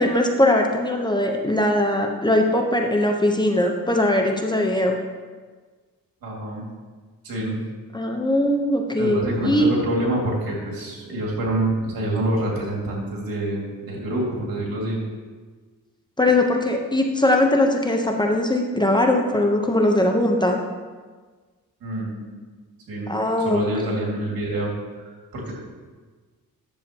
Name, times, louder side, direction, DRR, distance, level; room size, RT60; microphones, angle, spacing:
voice 1, 0.0-4.9 7.9-9.7 16.2-20.6 23.1-23.7, left 1 dB, 15° left, 2 dB, 0.9 m, -20 dB
voice 2, 6.2-6.7 7.2-7.6 9.0-15.0 21.8-22.4 22.9-23.1 23.4-24.7 25.0-25.5, right 1 dB, 80° right, -3 dB, 2.4 m, -26 dB
10.0 x 7.1 x 3.0 m, 1.4 s
cardioid pair, 75°, 34 cm